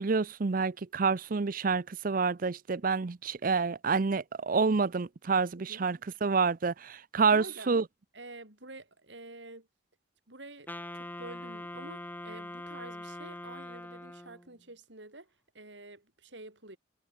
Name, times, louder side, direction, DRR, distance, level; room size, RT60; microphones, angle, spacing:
voice 1, 0.0-7.8, right 4 dB, 45° right, 0.6 m, -28 dB
voice 2, 5.5-5.9 7.2-7.7 8.1-9.7 10.3-16.8, right 2 dB, 70° right, 7.2 m, -48 dB
Wind instrument woodwind instrument, 10.7-14.5, left 1 dB, 10° left, 1.6 m, -42 dB
head